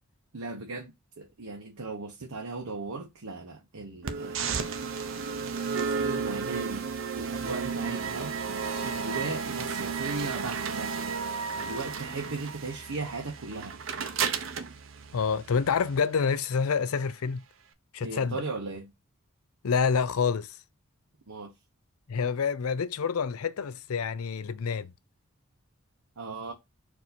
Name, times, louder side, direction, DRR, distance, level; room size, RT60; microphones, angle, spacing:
voice 1, 0.3-0.9 1.2-4.7 5.8-6.8 7.2-8.3 8.8-11.0 11.5-13.8 18.0-18.9 21.3-21.5 26.2-26.5, right 3 dB, 85° right, 0.9 m, -37 dB
sound 1, 4.0-16.0, right 5 dB, 60° right, 0.7 m, -33 dB
voice 2, 15.1-17.4 17.9-18.4 19.6-20.5 22.1-24.9, left 6 dB, 75° left, 0.5 m, -27 dB
4.6 x 2.7 x 4.1 m
head